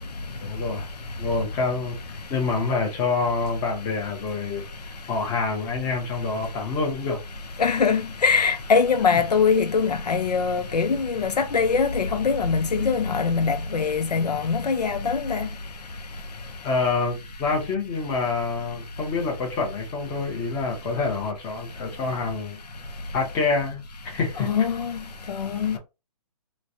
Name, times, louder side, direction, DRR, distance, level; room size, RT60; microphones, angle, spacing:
voice 1, 0.4-0.9 1.2-2.0 2.3-4.6 5.1-7.2 16.6-22.6 23.1-24.5, left 4 dB, 15° left, 0.7 m, -27 dB
voice 2, 7.6-15.5 24.4-25.0 25.3-25.8, left 5 dB, 85° left, 0.6 m, -22 dB
3.1 x 2.2 x 2.6 m
hypercardioid pair, 155°, 20 cm